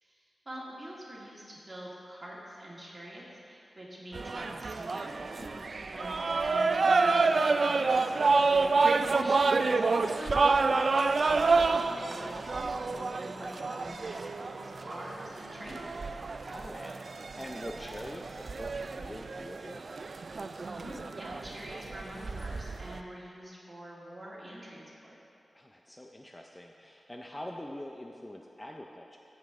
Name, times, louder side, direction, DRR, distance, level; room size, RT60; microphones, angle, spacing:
voice 1, 0.0-5.5 5.8-10.4 11.2-16.0 20.6-25.1, equal, 25° right, -6 dB, 2.2 m, -45 dB
sound 1, 4.1-23.0, right 4 dB, 55° right, 0.3 m, -29 dB
voice 2, 5.4-5.7 10.7-11.1 16.4-19.8 25.5-29.2, left 1 dB, 15° left, 1 dB, 0.4 m, -44 dB
15.0 x 5.3 x 3.6 m, 2.6 s
wide cardioid pair, 105°, 0 cm